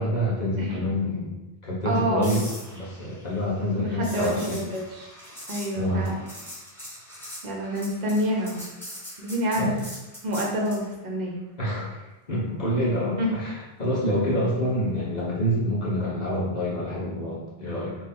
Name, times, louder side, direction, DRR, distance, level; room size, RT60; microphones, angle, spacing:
voice 1, 0.0-1.3 1.6-2.4 2.7-4.6 5.7-6.1 9.5-9.8 11.6-12.0 12.3-18.0, equal, 45° left, -6 dB, 0.9 m, -27 dB
voice 2, 1.8-2.3 3.7-5.1 5.5-6.2 7.4-8.6 9.2-9.7 10.2-11.4 13.2-13.3, equal, 50° right, -1 dB, 0.8 m, -27 dB
sound 1, 2.2-10.9 15.1-15.3, equal, ahead, 0.9 m, -42 dB
3.2 x 2.3 x 4.2 m, 1.1 s
omnidirectional pair, 1.0 m